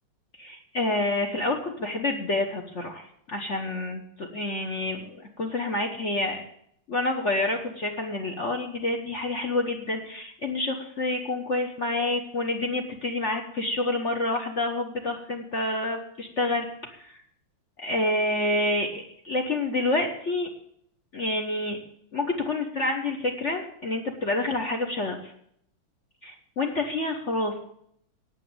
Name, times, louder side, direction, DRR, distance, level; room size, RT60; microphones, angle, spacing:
voice 1, 0.4-6.4 6.9-17.2 17.8-20.5 21.1-21.8 22.1-25.3 26.2-27.6, left 2 dB, 40° left, 4 dB, 1.2 m, -28 dB
9.2 x 8.4 x 8.7 m, 0.69 s
omnidirectional pair, 2.2 m